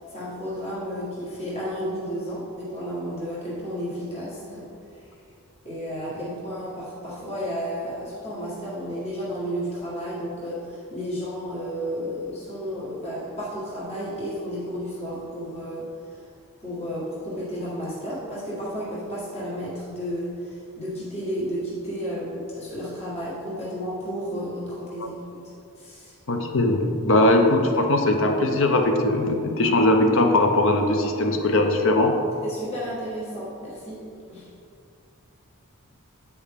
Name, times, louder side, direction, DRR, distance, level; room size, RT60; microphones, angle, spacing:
voice 1, 0.1-4.7 4.9-5.0 5.6-16.3 16.6-25.4 25.8-26.1 32.4-34.5, equal, 30° left, -8 dB, 1.6 m, -32 dB
voice 2, 26.3-32.1, left 2 dB, 60° left, 4 dB, 0.7 m, -20 dB
8.4 x 4.7 x 3.6 m, 2.5 s
head